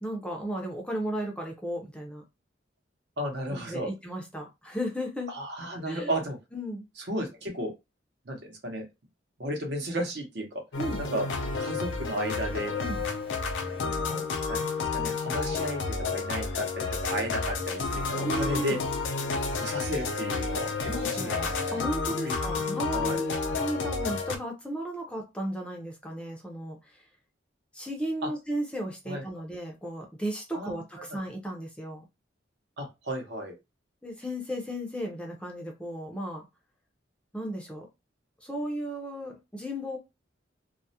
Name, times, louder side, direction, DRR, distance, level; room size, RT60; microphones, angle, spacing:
voice 1, 0.0-2.2 3.5-5.3 5.9-6.1 6.5-6.9 10.8-11.0 12.8-13.0 18.2-18.8 20.9-27.0 27.7-32.0 34.0-36.4 37.3-37.9 38.4-40.0, equal, 5° left, 0.5 m, -35 dB
voice 2, 3.2-3.9 5.3-6.4 7.0-7.7 8.3-8.8 9.4-10.6 11.0-11.3 11.6-12.7 13.8-14.6 14.9-15.8 16.1-18.8 19.5-21.3 21.7-21.8 22.2-22.4 22.9-23.2 28.2-28.3 29.1-29.2 30.5-30.8 31.1-31.2 32.8-33.5, equal, 60° right, 0.8 m, -33 dB
sound 1, 10.7-24.4, left 4 dB, 80° left, 0.4 m, -31 dB
2.3 x 2.0 x 2.7 m
head